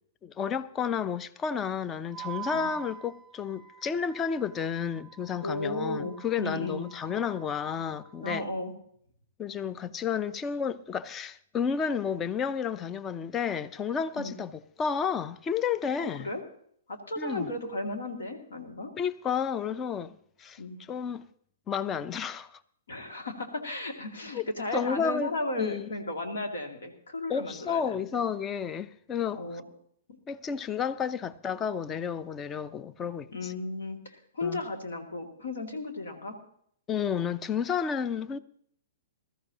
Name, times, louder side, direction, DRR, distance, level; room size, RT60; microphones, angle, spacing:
voice 1, 0.2-8.4 9.4-16.3 17.2-17.5 19.0-20.6 20.9-21.2 21.7-22.6 24.3-24.4 24.7-25.3 25.6-25.9 27.3-29.6 30.3-33.5 34.4-34.6 36.9-38.4, left 7 dB, 20° left, 0.6 m, -31 dB
Wind instrument woodwind instrument, 2.1-8.3, right 11 dB, 15° right, 1.0 m, -46 dB
voice 2, 5.4-6.8 8.2-8.7 14.2-14.4 16.2-16.4 16.9-18.9 20.6-20.8 22.9-28.0 29.3-29.6 30.1-30.2 33.3-36.4, left 2 dB, 70° left, 2.3 m, -35 dB
20.5 x 13.5 x 2.9 m
figure-of-eight pair, 115°, 0 cm